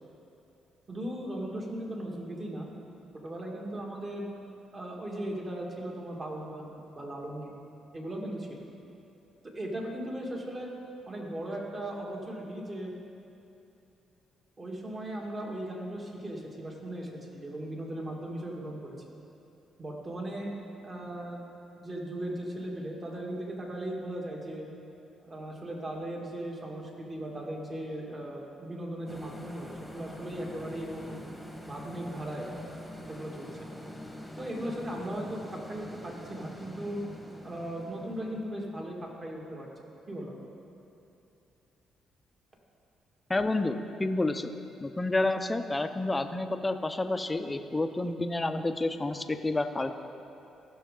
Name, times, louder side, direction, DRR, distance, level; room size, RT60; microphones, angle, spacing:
voice 1, 0.9-2.7 3.2-4.3 4.7-7.5 7.9-8.5 9.5-10.7 11.1-12.9 14.6-19.0 19.8-20.5 20.8-21.4 21.8-24.7 25.2-31.2 31.7-32.5 33.1-33.5 34.4-37.0 37.4-39.7 40.1-40.3, right 1 dB, 35° right, -1 dB, 1.9 m, -37 dB
sound 1, 29.1-39.6, left 1 dB, ahead, 1.3 m, -45 dB
voice 2, 43.3-44.5 44.8-49.9, left 2 dB, 15° left, 8 dB, 0.5 m, -29 dB
15.5 x 6.4 x 3.8 m, 2.8 s
cardioid pair, 90°, 0 cm